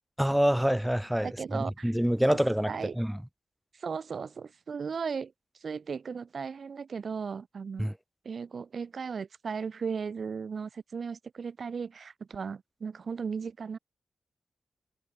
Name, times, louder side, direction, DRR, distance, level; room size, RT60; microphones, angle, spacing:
voice 1, 0.2-3.2 7.8-7.9, equal, 5° right, 0.6 m, -27 dB
voice 2, 1.2-1.9 2.3-2.4 2.7-2.9 3.8-5.3 5.6-7.9 8.2-13.8, right 5 dB, 55° right, 1.2 m, -36 dB
wide cardioid pair, 105°, 0 cm